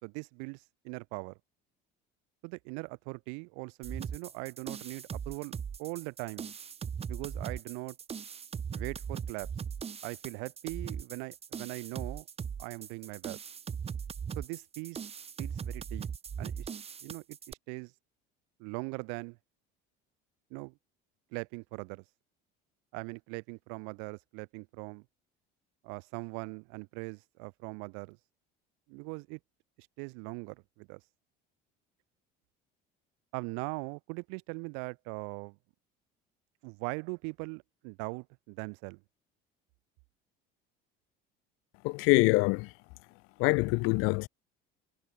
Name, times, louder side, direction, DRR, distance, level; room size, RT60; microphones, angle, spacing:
voice 1, 0.0-1.4 2.4-6.5 7.1-8.0 8.7-9.5 10.0-12.3 12.6-13.4 14.4-15.0 15.4-16.1 16.4-16.7 17.0-17.9 18.6-19.4 20.5-20.7 21.3-22.0 22.9-25.0 25.8-28.2 28.9-29.4 29.8-31.0 33.3-35.6 36.6-39.0, right 40 dB or more, 90° right, 5.9 m, -40 dB
sound 1, 3.8-17.5, right 7 dB, 30° right, 5.9 m, -39 dB
voice 2, 41.8-42.7 43.4-44.3, left 26 dB, 75° left, 2.3 m, -25 dB
cardioid pair, 140°, 21 cm